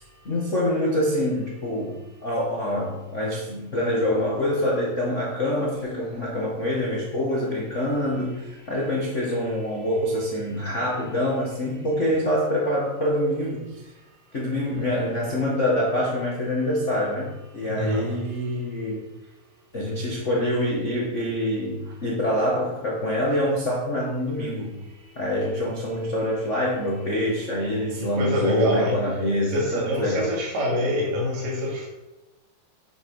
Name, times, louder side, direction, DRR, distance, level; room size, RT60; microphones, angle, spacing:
voice 1, 0.2-13.7 14.3-19.0 19.7-24.8 25.1-30.4, left 1 dB, 85° left, -4 dB, 0.6 m, -25 dB
voice 2, 17.7-18.1 28.0-28.9 29.5-31.9, equal, 65° right, -2 dB, 3.9 m, -26 dB
8.5 x 7.2 x 5.5 m, 1.0 s
omnidirectional pair, 4.3 m